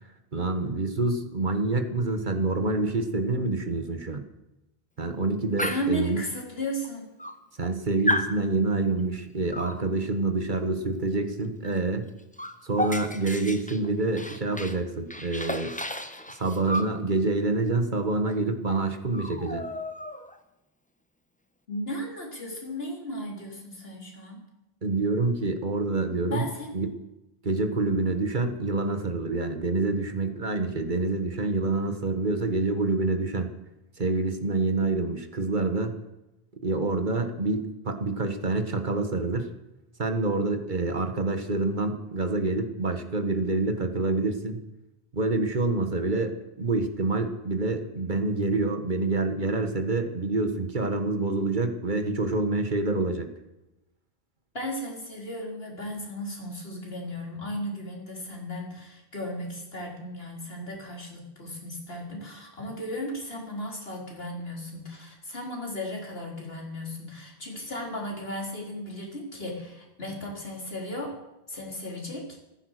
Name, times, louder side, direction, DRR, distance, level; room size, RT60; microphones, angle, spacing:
voice 1, 0.3-4.2 5.0-6.2 7.6-12.0 12.6-15.7 16.3-19.7 24.8-26.4 26.7-26.9 27.4-33.5 34.0-35.9 36.6-39.5 40.0-44.6 45.1-53.3, right 3 dB, 50° right, 7 dB, 1.6 m, -27 dB
voice 2, 5.6-7.1 21.7-24.4 26.2-26.8 54.5-71.2 71.5-72.4, equal, 70° left, -1 dB, 4.1 m, -35 dB
Dog, 5.6-6.0 6.8-6.9 7.2-7.7 8.1-8.4 9.5-9.8 11.6-11.8 12.1-14.8 15.1-17.0 18.2-18.4 18.7-18.8 19.1-20.4, left 1 dB, 10° left, 0.9 m, -32 dB
15.0 x 14.5 x 6.5 m, 0.93 s
omnidirectional pair, 1.0 m